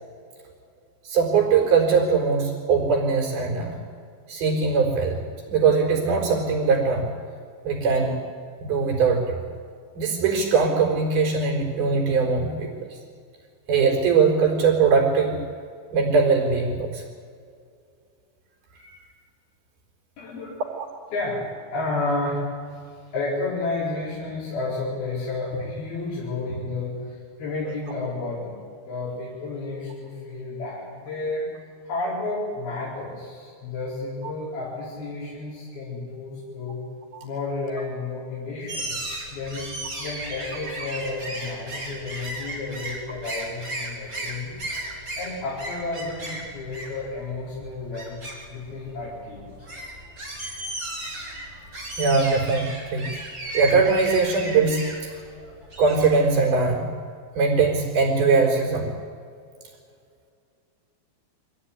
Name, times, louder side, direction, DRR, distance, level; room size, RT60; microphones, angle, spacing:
voice 1, 1.0-3.8 4.3-5.2 5.4-7.1 7.6-8.2 8.6-9.4 9.9-13.0 13.7-15.4 15.9-17.0 20.8-20.9 37.1-37.3 52.0-53.1 53.5-54.8 55.8-56.9 57.3-58.9, right 5 dB, 85° right, 0 dB, 6.3 m, -21 dB
voice 2, 20.2-20.5 21.1-21.4 21.7-22.4 23.1-27.0 27.4-28.5 28.8-31.5 31.9-36.8 37.2-39.0 39.3-39.6 40.0-44.6 45.2-48.2 48.5-49.4, left 3 dB, 80° left, -8 dB, 6.5 m, -31 dB
sound 1, 38.7-56.3, right 1 dB, 25° right, 5.8 m, -35 dB
24.5 x 16.5 x 10.0 m, 2.2 s
omnidirectional pair, 4.3 m